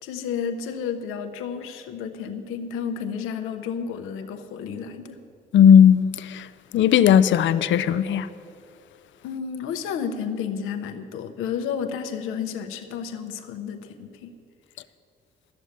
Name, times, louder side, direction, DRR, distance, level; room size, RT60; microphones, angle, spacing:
voice 1, 0.0-5.2 9.2-14.3, left 7 dB, 85° left, 0.9 m, -31 dB
voice 2, 5.5-6.5 6.7-8.3, left 8 dB, 65° left, 0.5 m, -16 dB
12.5 x 7.1 x 9.6 m
supercardioid pair, 55°, 21 cm